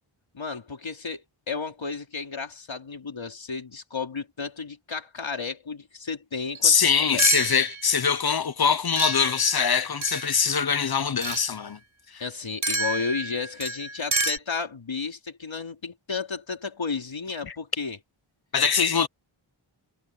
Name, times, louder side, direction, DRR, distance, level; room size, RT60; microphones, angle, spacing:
voice 1, 0.3-7.4 12.2-18.0, left 4 dB, 65° left, 3.9 m, -33 dB
sound 1, 6.5-6.6 7.2-8.0 9.0-10.5 11.2-11.5 12.6-14.4, right 2 dB, 35° right, 6.4 m, -29 dB
voice 2, 6.6-11.8 17.4-17.5 18.5-19.1, left 6 dB, 50° left, 1.0 m, -23 dB
wide cardioid pair, 95°, 50 cm